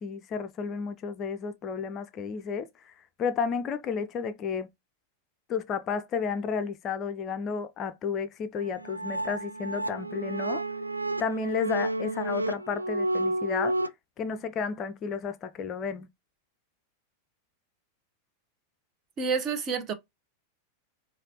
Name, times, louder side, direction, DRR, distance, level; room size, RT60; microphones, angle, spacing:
voice 1, 0.0-4.7 5.5-10.6 11.2-13.9 14.2-16.1, left 6 dB, 30° left, 0.4 m, -32 dB
sound 1, 8.6-13.9, right 1 dB, 85° right, 0.3 m, -31 dB
voice 2, 19.2-19.9, right 5 dB, 30° right, 0.8 m, -28 dB
5.0 x 2.4 x 2.7 m
figure-of-eight pair, 90°, 0 cm